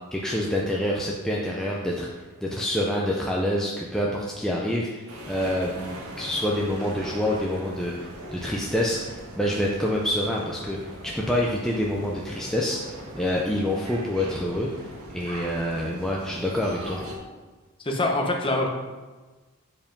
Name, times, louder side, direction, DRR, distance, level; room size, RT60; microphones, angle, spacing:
voice 1, 0.1-2.1 2.4-17.0, left 1 dB, ahead, -3 dB, 0.5 m, -27 dB
sound 1, 5.1-17.2, equal, 75° right, 1.6 m, -40 dB
voice 2, 17.8-18.7, left 2 dB, 25° left, 1 dB, 0.9 m, -24 dB
7.5 x 4.9 x 5.2 m, 1.3 s
head